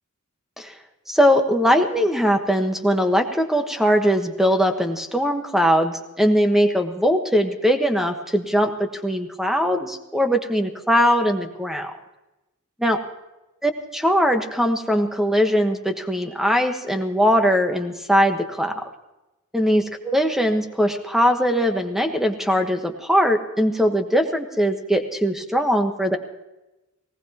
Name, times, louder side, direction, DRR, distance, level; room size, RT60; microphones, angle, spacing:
voice 1, 1.1-11.9 12.8-13.0 13.6-18.8 19.5-26.2, equal, ahead, 5 dB, 1.3 m, -20 dB
19.0 x 19.0 x 3.0 m, 1.0 s
head